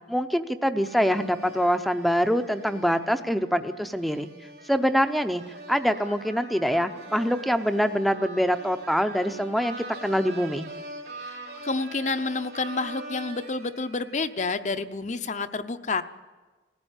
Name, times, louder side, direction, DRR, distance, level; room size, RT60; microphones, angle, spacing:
voice 1, 0.1-4.3 4.7-5.4 5.7-10.7, equal, ahead, 8 dB, 0.7 m, -24 dB
sound 1, 0.9-14.5, right 2 dB, 65° right, 3.3 m, -43 dB
voice 2, 11.2-16.0, left 3 dB, 40° left, 11 dB, 0.8 m, -29 dB
19.0 x 15.5 x 9.0 m, 1.3 s
head